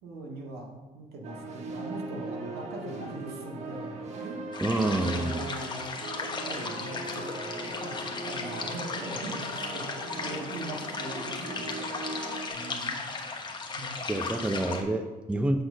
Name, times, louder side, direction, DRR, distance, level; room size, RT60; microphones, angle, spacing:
voice 1, 0.0-4.5 4.8-6.0 6.3-12.2 12.5-13.0 13.7-14.4, right 2 dB, 70° right, 0 dB, 1.7 m, -41 dB
sound 1, 1.2-12.5, right 2 dB, 40° right, 1.3 m, -39 dB
sound 2, 4.5-14.8, left 4 dB, 25° left, 1.0 m, -36 dB
voice 2, 4.6-5.4 14.1-15.6, right 1 dB, 5° right, 7 dB, 0.4 m, -28 dB
7.7 x 4.0 x 6.2 m, 1.3 s
cardioid pair, 110°, 17 cm